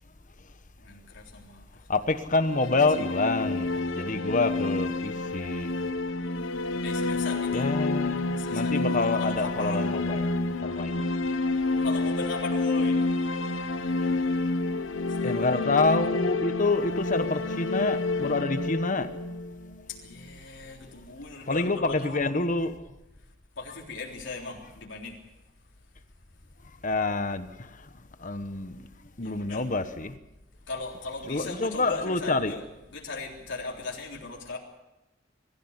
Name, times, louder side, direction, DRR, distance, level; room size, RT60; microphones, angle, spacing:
voice 1, 0.8-1.6 2.6-2.7 6.8-7.7 8.4-10.0 11.8-13.0 15.2-15.6 19.9-22.6 23.6-25.2 29.2-29.7 30.7-34.6, left 3 dB, 65° left, 3.7 m, -38 dB
voice 2, 1.9-5.7 7.5-11.1 15.2-19.1 21.5-22.7 26.8-27.9 28.2-28.9 29.2-30.2 31.3-32.5, left 3 dB, 40° left, 1.2 m, -27 dB
sound 1, 2.4-20.3, left 3 dB, 85° left, 1.2 m, -29 dB
22.5 x 15.0 x 8.3 m
head